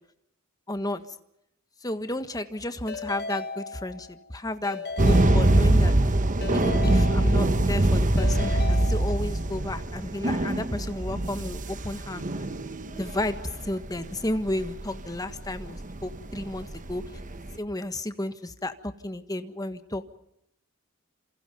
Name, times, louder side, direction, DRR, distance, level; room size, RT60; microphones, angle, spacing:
voice 1, 0.7-1.0 1.8-5.9 6.5-12.6 13.0-17.0 17.4-20.0, left 1 dB, 15° left, 9 dB, 1.5 m, -32 dB
Keyboard (musical) / Ringtone, 2.9-4.2 4.6-6.0 6.4-7.8 8.2-9.5, left 3 dB, 50° left, 1.7 m, -36 dB
sound 1, 5.0-17.6, right 1 dB, 35° right, 1.1 m, -24 dB
28.0 x 27.5 x 5.4 m, 0.77 s
head